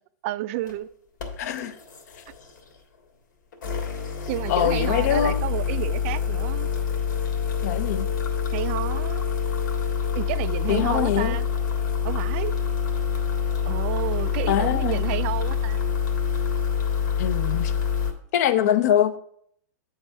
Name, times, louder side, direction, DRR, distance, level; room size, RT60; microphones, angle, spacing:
voice 1, 0.2-0.9 4.3-6.7 8.5-9.2 10.2-11.5 12.0-12.6 13.7-15.9, right 15 dB, 45° right, 0.3 m, -30 dB
sound 1, 0.6-0.7 1.2-2.8 3.5-18.1, left 7 dB, 85° left, 1.6 m, -26 dB
voice 2, 1.4-1.7 4.5-5.4 7.6-8.1 10.7-11.4 14.5-15.0 17.2-17.7 18.3-19.2, left 10 dB, 60° left, 0.6 m, -23 dB
8.9 x 3.5 x 5.4 m
supercardioid pair, 145°, 10 cm